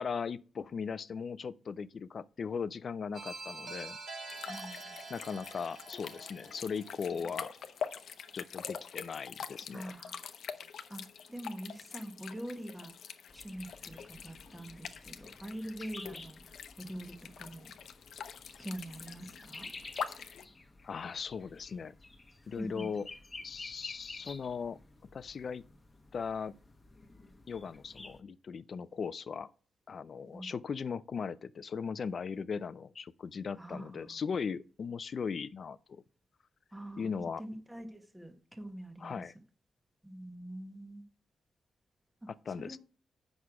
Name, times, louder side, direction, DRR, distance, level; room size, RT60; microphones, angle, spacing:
voice 1, 0.0-4.0 5.1-7.5 8.3-9.9 20.2-20.4 20.8-21.9 22.5-23.1 23.4-24.8 25.1-25.6 26.1-26.6 27.5-29.5 29.9-36.0 37.0-37.4 39.0-39.3 42.3-42.8, left 6 dB, 50° left, 0.4 m, -38 dB
sound 1, 3.1-7.9, right 3 dB, 70° right, 2.7 m, -47 dB
sound 2, 4.3-20.5, left 7 dB, 75° left, 0.7 m, -45 dB
voice 2, 4.5-5.0 9.7-10.2 10.9-11.0 11.3-12.9 13.3-17.7 18.6-19.7 22.6-22.9 30.3-30.5 33.6-34.2 36.7-37.1 37.4-39.2 40.0-41.0 42.2-42.3 42.6-42.8, right 1 dB, 10° right, 1.1 m, -44 dB
sound 3, 13.3-28.2, left 2 dB, 25° left, 0.9 m, -52 dB
8.3 x 6.1 x 4.8 m
wide cardioid pair, 130°, 0 cm